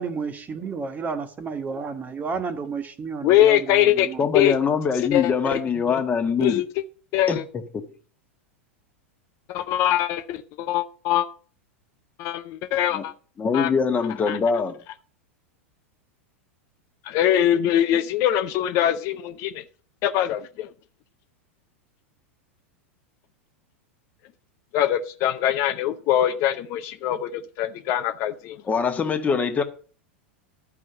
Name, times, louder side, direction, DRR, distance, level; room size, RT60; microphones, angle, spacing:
voice 1, 0.0-4.3, right 5 dB, 25° right, 1.6 m, -31 dB
voice 2, 3.2-4.1 4.3-4.6 5.1-5.6 6.4-6.6 7.1-7.4 9.5-11.3 12.2-13.1 13.5-13.7 14.3-14.4 17.0-19.6 20.0-20.7 24.7-28.6, left 12 dB, 45° left, 0.7 m, -22 dB
voice 3, 4.2-6.6 7.3-7.4 7.7-7.8 12.9-13.0 13.4-14.8 28.7-29.6, left 5 dB, 20° left, 1.4 m, -23 dB
12.0 x 5.0 x 6.8 m
hypercardioid pair, 95°, 7 cm